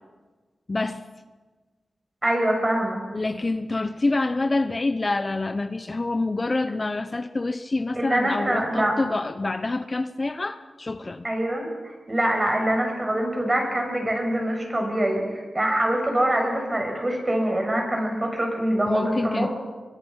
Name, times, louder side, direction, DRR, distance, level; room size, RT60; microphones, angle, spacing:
voice 1, 0.7-1.0 3.1-11.2 18.9-19.5, left 2 dB, 35° left, 11 dB, 0.8 m, -27 dB
voice 2, 2.2-3.0 7.9-8.9 11.2-19.5, right 1 dB, 25° right, 2 dB, 6.7 m, -24 dB
24.5 x 22.5 x 5.7 m, 1.4 s
cardioid pair, 65°, 0 cm